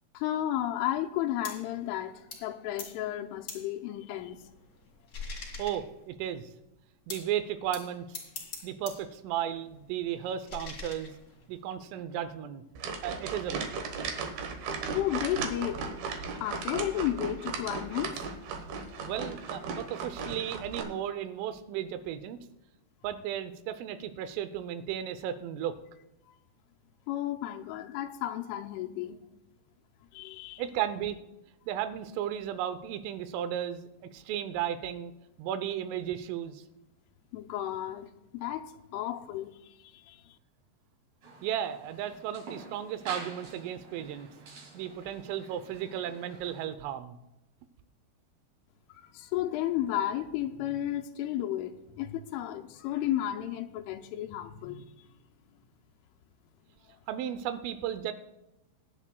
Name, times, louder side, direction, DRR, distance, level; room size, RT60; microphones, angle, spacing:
voice 1, 0.1-4.4 14.9-15.9 16.4-18.2 27.1-29.2 30.1-30.6 37.3-39.5 39.9-40.2 49.1-54.9, left 12 dB, 85° left, 3.1 m, -33 dB
sound 1, 1.4-1.7 2.3-2.5 2.8-3.0 3.5-3.7 4.2-6.2 7.1-7.4 7.7-9.1 9.4-11.6, left 3 dB, 55° left, 1.0 m, -44 dB
voice 2, 5.6-6.5 7.1-8.1 8.6-11.1 11.5-12.6 13.0-13.7 19.0-22.4 23.0-25.8 30.6-31.2 31.7-35.1 35.4-36.6 41.4-44.3 44.7-47.2 57.1-58.1, right 10 dB, 85° right, 3.3 m, -34 dB
sound 2, 12.8-20.8, right 5 dB, 70° right, 2.5 m, -36 dB
sound 3, 41.2-46.7, right 3 dB, 45° right, 3.3 m, -47 dB
22.5 x 10.0 x 2.3 m
omnidirectional pair, 5.6 m